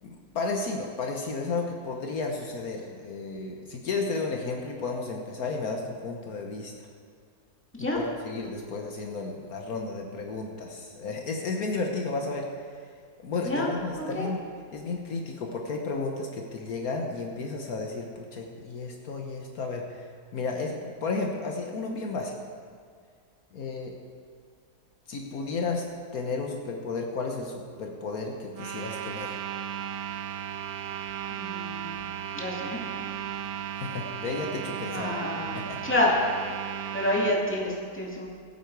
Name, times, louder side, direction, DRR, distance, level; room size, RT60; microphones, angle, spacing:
voice 1, 0.0-6.7 7.8-12.8 13.2-14.4 14.7-20.1 20.3-22.3 23.5-23.9 25.1-25.8 26.1-29.4 33.8-35.1 35.5-35.8, left 3 dB, 65° left, 1 dB, 1.4 m, -33 dB
voice 2, 14.0-14.3 31.3-33.1 34.9-35.6 35.8-36.1 36.9-38.3, left 1 dB, 5° left, -4 dB, 2.1 m, -29 dB
sound 1, 28.5-37.4, right 9 dB, 70° right, 1.1 m, -35 dB
17.0 x 8.5 x 4.7 m, 2.1 s
omnidirectional pair, 1.7 m